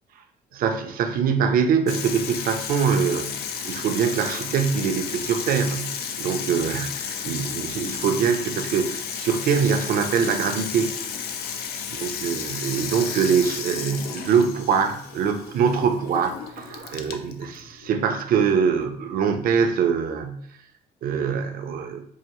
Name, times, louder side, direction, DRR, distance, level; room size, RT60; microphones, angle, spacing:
voice 1, 0.5-3.4 3.6-10.9 11.9-20.5 21.0-22.1, right 6 dB, 60° right, 7 dB, 0.6 m, -23 dB
Water tap faucet / Sink (filling or washing), 1.9-19.3, left 7 dB, 70° left, 0.5 m, -33 dB
4.7 x 2.4 x 3.0 m, 0.66 s
cardioid pair, 110°, 17 cm